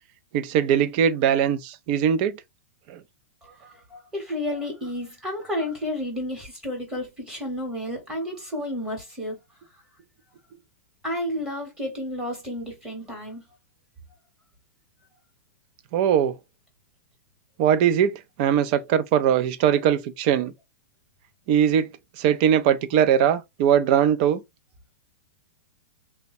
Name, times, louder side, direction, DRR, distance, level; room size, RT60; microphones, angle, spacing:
voice 1, 0.3-2.4 2.9-3.0 15.9-16.3 17.6-20.5 21.5-21.9 22.2-24.4, right 9 dB, 35° right, 0.4 m, -21 dB
voice 2, 3.4-9.4 11.0-13.4, left 1 dB, 10° right, 1.0 m, -31 dB
3.4 x 2.1 x 4.0 m
supercardioid pair, 165°, 8 cm